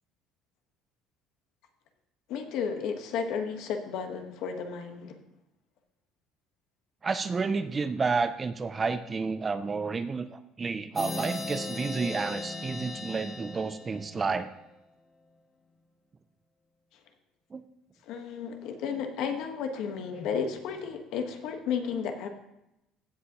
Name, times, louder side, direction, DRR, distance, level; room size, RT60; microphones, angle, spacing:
voice 1, 2.3-5.2 18.1-22.3, left 6 dB, 60° left, 6 dB, 1.2 m, -33 dB
voice 2, 7.0-14.5 17.5-17.6, right 4 dB, 20° right, 12 dB, 0.4 m, -30 dB
sound 1, 11.0-14.5, left 2 dB, 15° left, 0.7 m, -37 dB
15.5 x 7.7 x 2.9 m, 0.88 s
cardioid pair, 165°, 0 cm